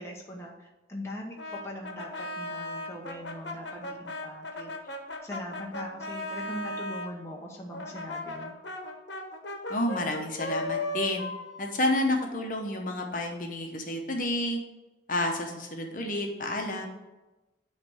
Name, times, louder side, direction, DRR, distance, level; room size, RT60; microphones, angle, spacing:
voice 1, 0.0-4.9 5.2-8.5, left 1 dB, 15° left, -2 dB, 0.8 m, -41 dB
Brass instrument, 1.4-7.1 7.7-12.5, left 1 dB, 75° left, 1.1 m, -37 dB
voice 2, 9.7-11.2 11.6-14.6 15.1-16.9, left 1 dB, 45° left, 2 dB, 1.0 m, -30 dB
9.4 x 3.3 x 6.2 m, 1.1 s
head